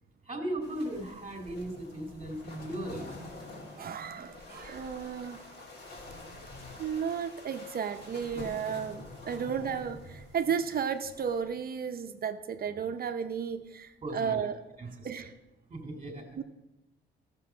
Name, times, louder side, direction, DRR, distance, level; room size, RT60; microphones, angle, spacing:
voice 1, 0.2-3.2 9.3-9.4 14.0-14.4 14.8-15.1 15.7-16.4, right 1 dB, 25° right, 3 dB, 2.2 m, -37 dB
sound 1, 0.6-11.4, left 2 dB, 55° left, 2.9 m, -47 dB
voice 2, 3.8-5.6 6.8-14.6 15.0-15.3 16.4-16.5, right 7 dB, 50° right, 8 dB, 0.7 m, -34 dB
13.0 x 6.9 x 5.6 m, 0.99 s
cardioid pair, 90°, 20 cm